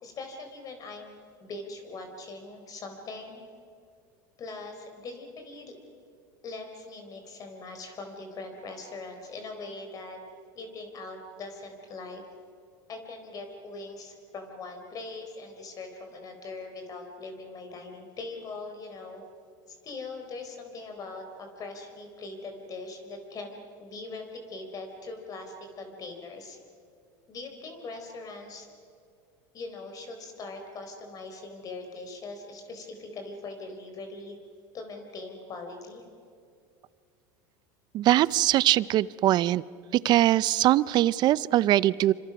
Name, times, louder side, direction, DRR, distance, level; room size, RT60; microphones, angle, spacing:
voice 1, 0.0-3.4 4.4-5.7 6.4-10.2 10.6-12.2 12.9-19.2 19.7-26.6 27.3-28.7 29.5-34.4 34.7-36.0, left 3 dB, 35° left, 5 dB, 4.1 m, -41 dB
voice 2, 37.9-39.6 39.9-42.1, right 14 dB, 45° right, 20 dB, 0.6 m, -22 dB
27.5 x 25.0 x 6.0 m, 2.4 s
supercardioid pair, 110°, 10 cm